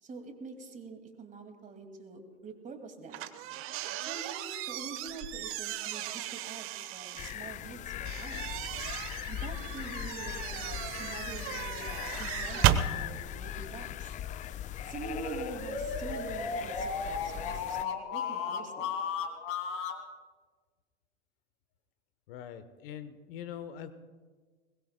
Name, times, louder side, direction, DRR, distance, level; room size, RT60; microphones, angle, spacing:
voice 1, 0.0-3.3 4.0-8.6 9.3-14.2 14.8-18.9, right 4 dB, 25° right, 6 dB, 2.3 m, -45 dB
sound 1, 3.1-7.3 8.1-12.9, right 11 dB, 45° right, 0.9 m, -34 dB
sound 2, 7.2-17.8, left 11 dB, 25° left, 0.4 m, -39 dB
sound 3, 15.0-20.0, left 5 dB, 45° left, 2.2 m, -35 dB
voice 2, 22.3-23.9, left 9 dB, 65° left, 12 dB, 1.0 m, -43 dB
21.5 x 20.5 x 2.2 m, 1.4 s
hypercardioid pair, 90°, 31 cm